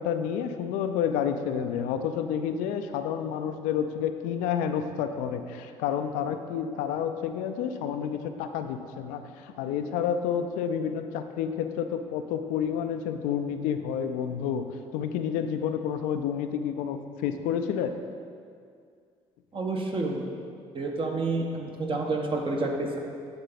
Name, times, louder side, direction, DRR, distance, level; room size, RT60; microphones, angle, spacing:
voice 1, 0.0-14.6 14.9-17.9, left 8 dB, 80° left, 8 dB, 0.4 m, -29 dB
voice 2, 19.5-20.3 20.7-23.0, right 2 dB, 40° right, 0 dB, 1.3 m, -29 dB
10.5 x 3.9 x 4.1 m, 2.2 s
supercardioid pair, 60°, 13 cm